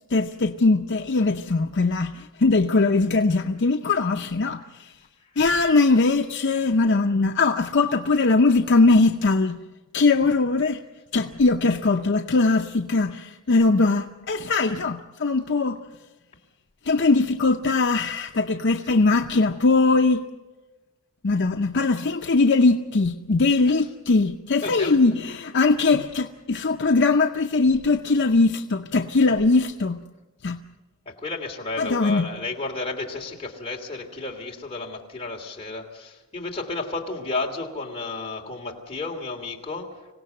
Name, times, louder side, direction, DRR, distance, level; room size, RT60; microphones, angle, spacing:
voice 1, 0.1-4.9 5.4-9.6 9.9-10.8 11.1-15.8 16.8-20.2 21.2-30.0 30.4-30.6 31.8-32.3, left 3 dB, 55° left, 0.7 m, -21 dB
voice 2, 24.6-25.0 31.1-39.9, left 3 dB, 25° left, 2.8 m, -32 dB
26.0 x 17.0 x 7.8 m
head